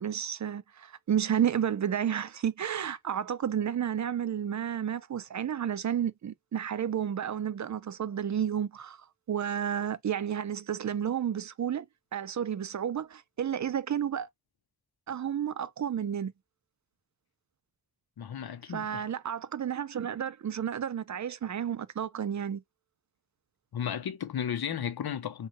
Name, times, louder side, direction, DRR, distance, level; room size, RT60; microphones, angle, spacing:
voice 1, 0.0-9.0 9.3-11.9 12.1-14.3 15.1-16.3 18.7-22.6, right 9 dB, 50° right, 0.4 m, -31 dB
voice 2, 18.2-19.0 23.7-25.5, left 8 dB, 75° left, 0.7 m, -34 dB
2.6 x 2.3 x 3.0 m
cardioid pair, 45°, 38 cm